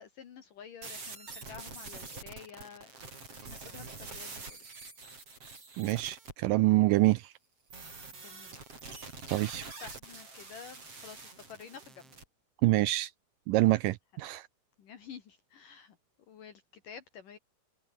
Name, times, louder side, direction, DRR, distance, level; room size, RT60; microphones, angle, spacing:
voice 1, 0.0-2.9 3.5-4.6 8.1-8.6 9.8-12.2 14.8-16.0 16.3-17.4, left 7 dB, 60° left, 3.5 m, -50 dB
sound 1, 0.8-6.3 7.7-12.2, right 3 dB, 35° right, 6.8 m, -46 dB
voice 2, 5.8-7.3 9.3-9.6 12.6-13.1 13.5-14.5, right 18 dB, 85° right, 2.0 m, -26 dB
omnidirectional pair, 4.5 m